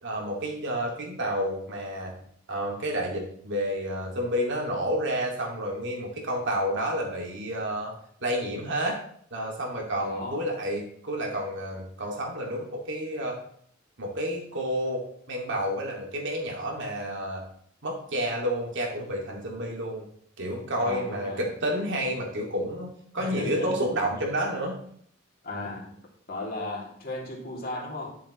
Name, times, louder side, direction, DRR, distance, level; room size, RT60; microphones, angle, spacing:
voice 1, 0.0-2.1 2.5-7.9 8.2-9.0 9.3-13.4 14.0-17.4 17.8-20.0 20.4-24.8, equal, 60° right, 0 dB, 2.4 m, -30 dB
voice 2, 10.0-10.4 20.8-21.4 23.2-23.9 24.2-24.3 25.4-25.9 26.3-28.1, left 2 dB, 45° left, -2 dB, 2.7 m, -35 dB
11.0 x 7.0 x 3.1 m, 0.62 s
head